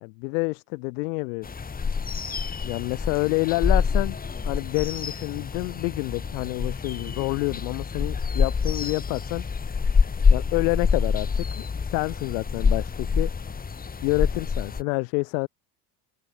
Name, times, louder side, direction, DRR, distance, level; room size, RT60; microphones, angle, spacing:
voice 1, 0.0-1.5 2.6-4.2 4.4-9.4 10.3-13.3 14.0-15.5, left 31 dB, 75° left, 0.7 m, -28 dB
sound 1, 1.4-14.8, left 5 dB, 20° left, 1.3 m, -26 dB
supercardioid pair, 90°, 47 cm